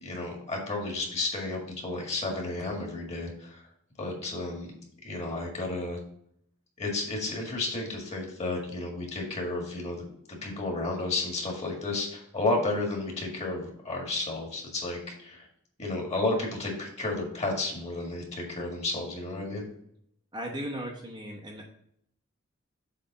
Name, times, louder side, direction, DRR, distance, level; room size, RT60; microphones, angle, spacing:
voice 1, 0.0-3.6 4.0-4.7 5.0-6.0 6.8-15.5 15.8-19.7, left 2 dB, 30° left, 0 dB, 1.9 m, -32 dB
voice 2, 20.3-21.7, equal, 20° right, 0 dB, 0.9 m, -37 dB
7.6 x 3.4 x 5.4 m, 0.72 s
head